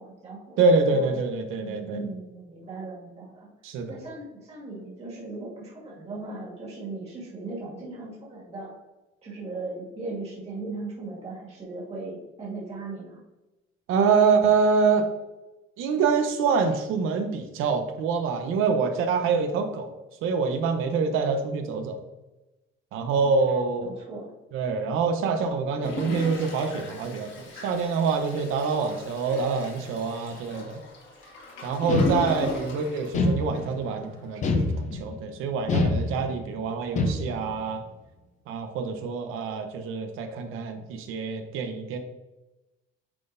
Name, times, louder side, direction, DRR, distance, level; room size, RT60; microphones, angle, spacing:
voice 1, 0.0-1.2 1.6-3.5 3.9-8.7 9.2-13.2 22.9-24.3 31.9-32.3, right 3 dB, 30° right, -5 dB, 2.0 m, -38 dB
voice 2, 0.6-2.0 3.6-4.0 13.9-15.1 15.8-19.9 20.2-22.0 22.9-23.9 24.5-30.8 31.6-34.6 34.9-37.8 38.5-42.0, right 5 dB, 80° right, 7 dB, 0.9 m, -25 dB
Toilet flush, 25.8-33.9 34.3-34.4 34.6-34.7, left 1 dB, 60° left, 1.8 m, -38 dB
sound 1, 31.9-32.7 33.1-33.9 34.4-35.2 35.7-36.5 37.0-37.6, left 2 dB, 35° left, 0.7 m, -25 dB
9.0 x 4.0 x 2.6 m, 1.0 s
cardioid pair, 160°, 21 cm